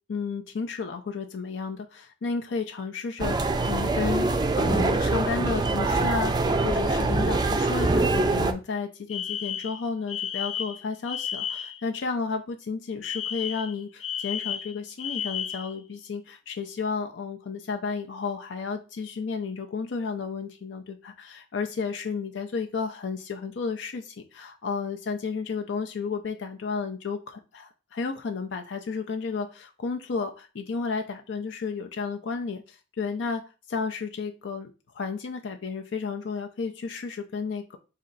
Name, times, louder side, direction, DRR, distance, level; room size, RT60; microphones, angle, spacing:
voice 1, 0.1-3.4 3.6-33.4 33.7-37.8, left 5 dB, 85° left, 5 dB, 0.5 m, -32 dB
sound 1, 3.2-8.5, right 3 dB, 25° right, 0.4 m, -24 dB
Alarm, 9.1-11.8 13.0-15.8, left 9 dB, 35° left, 0.6 m, -33 dB
4.2 x 2.7 x 3.8 m, 0.32 s
head